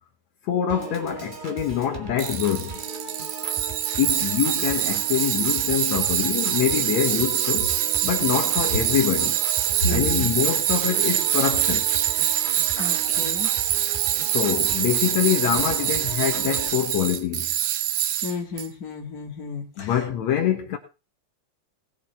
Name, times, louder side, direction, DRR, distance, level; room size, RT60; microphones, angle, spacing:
voice 1, 0.5-2.7 4.0-7.7 8.0-9.4 9.9-11.9 14.3-17.5 19.8-20.8, left 10 dB, 70° left, 2.4 m, -25 dB
Piano / Organ, 0.7-16.7, right 3 dB, 20° right, 1.5 m, -38 dB
Tools, 2.2-18.7, right 12 dB, 70° right, 1.6 m, -24 dB
voice 2, 9.8-10.3 12.8-13.5 18.2-19.9, left 2 dB, 30° left, 2.7 m, -30 dB
18.0 x 8.5 x 4.2 m
omnidirectional pair, 3.3 m